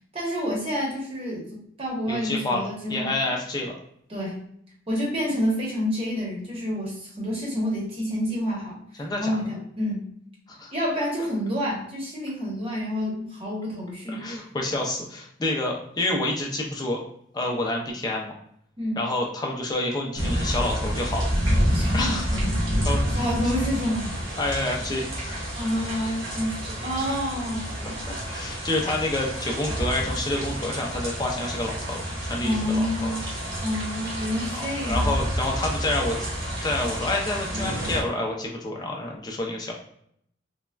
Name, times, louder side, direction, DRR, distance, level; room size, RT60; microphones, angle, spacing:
voice 1, 0.1-3.2 4.1-4.4 4.9-8.8 9.2-10.1 10.7-14.3 18.8-19.0 21.7-22.8 23.1-24.1 25.6-28.0 32.4-33.3 33.6-35.1, equal, 30° right, -4 dB, 0.8 m, -28 dB
voice 2, 2.1-3.8 9.0-9.4 10.5-10.7 14.1-17.0 17.3-18.3 19.0-21.3 21.9-22.4 22.8-23.3 24.4-25.5 28.1-32.0 32.3-33.2 34.5-36.3 36.6-39.7, left 2 dB, 20° left, 0 dB, 0.4 m, -28 dB
sound 1, 20.1-38.0, equal, 75° right, 1.1 m, -29 dB
3.3 x 2.1 x 2.2 m, 0.69 s
head